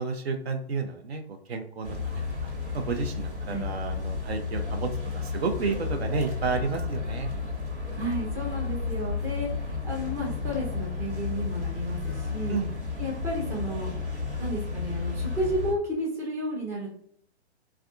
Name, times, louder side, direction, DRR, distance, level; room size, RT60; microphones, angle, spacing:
voice 1, 0.0-2.2 2.7-7.3 12.5-12.7, right 4 dB, 65° right, 6 dB, 0.7 m, -31 dB
sound 1, 1.8-15.7, left 4 dB, 90° right, 1.4 m, -32 dB
voice 2, 8.0-12.6 13.0-13.9 14.4-16.9, equal, 10° right, -3 dB, 0.5 m, -32 dB
3.3 x 2.3 x 2.4 m, 0.68 s
figure-of-eight pair, 120°, 33 cm